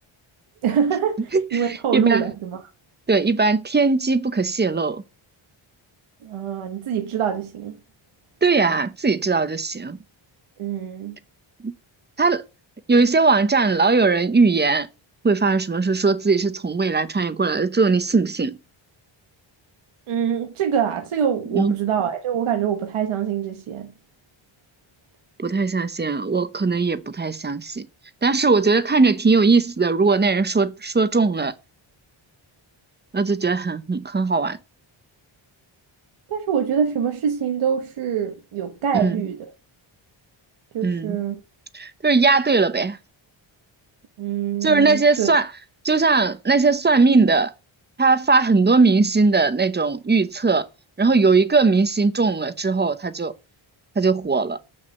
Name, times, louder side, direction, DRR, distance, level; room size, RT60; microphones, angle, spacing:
voice 1, 0.6-2.7 6.2-7.8 10.6-11.2 20.1-23.9 36.3-39.5 40.7-41.4 44.2-45.3, right 8 dB, 90° right, 1.2 m, -24 dB
voice 2, 1.3-2.2 3.1-5.0 8.4-10.0 11.6-11.7 12.2-12.4 12.9-14.9 15.2-18.6 21.5-21.7 25.4-27.9 28.2-31.5 33.1-34.6 38.9-39.2 40.8-41.2 41.7-43.0 44.6-45.5 45.8-47.5 48.0-50.7 51.0-53.3 54.0-54.6, right 4 dB, 20° right, 0.8 m, -19 dB
7.2 x 6.5 x 7.0 m
wide cardioid pair, 125°, 49 cm